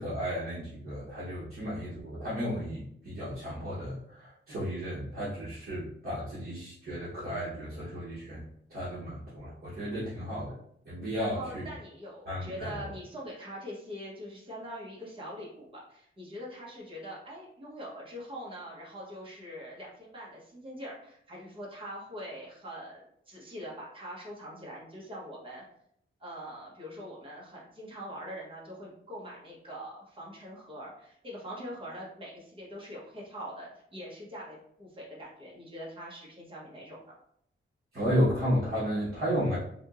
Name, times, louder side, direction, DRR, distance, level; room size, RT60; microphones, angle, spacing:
voice 1, 0.0-8.4 8.7-10.6 10.9-11.6 12.3-12.9 37.9-39.6, equal, 50° right, -10 dB, 1.0 m, -33 dB
voice 2, 11.1-25.6 26.2-37.0, equal, 25° right, -5 dB, 1.0 m, -43 dB
3.5 x 2.8 x 2.4 m, 0.70 s
wide cardioid pair, 170°, 21 cm